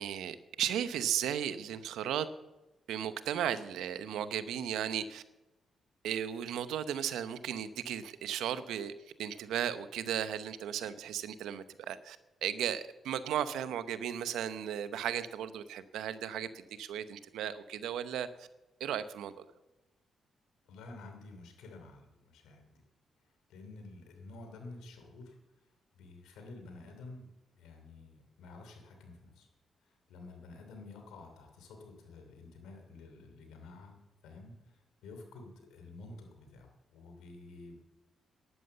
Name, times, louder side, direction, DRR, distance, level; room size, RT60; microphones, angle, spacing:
voice 1, 0.0-2.3 2.9-5.2 6.0-8.9 9.2-18.5 18.8-19.4, right 9 dB, 85° right, 12 dB, 0.8 m, -35 dB
voice 2, 20.7-22.8 23.5-25.4 25.9-29.5 30.1-34.0 34.2-37.7, left 3 dB, 90° left, 4 dB, 2.9 m, -50 dB
11.5 x 11.0 x 6.9 m, 1.0 s
supercardioid pair, 65°, 0 cm